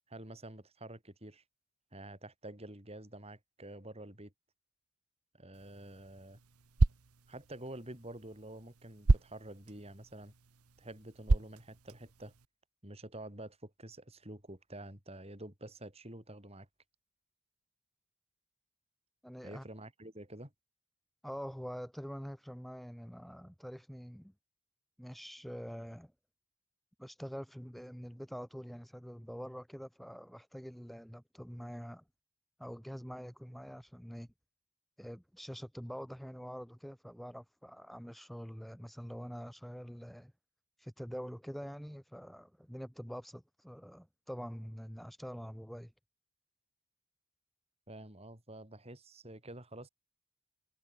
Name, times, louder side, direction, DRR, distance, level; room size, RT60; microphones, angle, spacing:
voice 1, 0.1-1.4 1.9-4.3 5.3-6.4 7.3-10.3 10.8-12.3 12.8-16.7 19.4-20.5 47.9-49.9, right 1 dB, 25° right, 5.0 m, -48 dB
sound 1, 5.5-12.5, right 2 dB, 85° right, 1.1 m, -34 dB
voice 2, 19.2-19.6 21.2-24.3 25.0-26.1 27.0-32.0 32.6-34.3 35.0-40.3 40.8-45.9, equal, ahead, 4.1 m, -45 dB
head